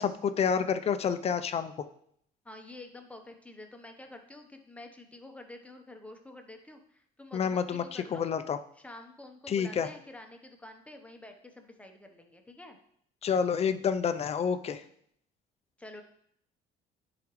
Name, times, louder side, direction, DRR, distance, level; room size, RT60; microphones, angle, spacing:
voice 1, 0.0-1.9 7.3-8.6 9.5-9.9 13.2-14.8, left 7 dB, 40° left, 11 dB, 0.5 m, -29 dB
voice 2, 2.4-8.3 8.8-12.8 15.8-16.0, left 2 dB, 5° left, 4 dB, 0.9 m, -48 dB
10.5 x 4.9 x 3.1 m, 0.69 s
cardioid pair, 110°, 17 cm